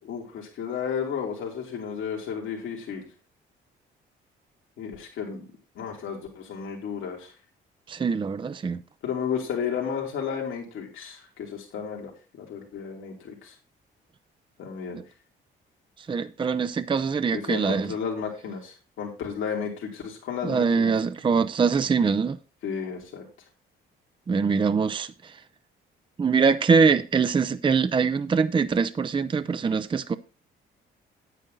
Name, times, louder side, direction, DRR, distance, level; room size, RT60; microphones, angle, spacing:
voice 1, 0.0-3.1 4.8-5.4 5.8-7.3 9.0-13.5 14.6-15.0 17.3-20.9 22.6-23.3, left 7 dB, 80° left, 2.9 m, -33 dB
voice 2, 7.9-8.8 14.9-15.0 16.1-17.9 20.4-22.4 24.3-25.3 26.2-30.1, right 5 dB, 25° right, 0.5 m, -23 dB
9.1 x 9.0 x 3.9 m
cardioid pair, 90°, 20 cm